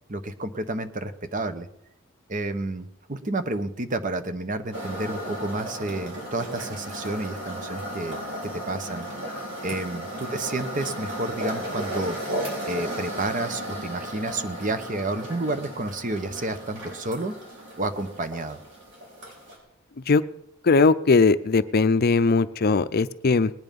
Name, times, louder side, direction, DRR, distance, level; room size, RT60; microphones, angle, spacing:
voice 1, 0.1-1.7 2.3-8.2 8.4-9.1 9.6-12.2 12.7-17.3 17.8-18.6, right 2 dB, 40° right, 10 dB, 1.0 m, -30 dB
sound 1, 4.7-19.6, right 1 dB, 60° right, 5.2 m, -35 dB
voice 2, 20.6-23.5, left 4 dB, 50° left, 14 dB, 0.5 m, -19 dB
19.5 x 9.7 x 5.3 m, 0.77 s
head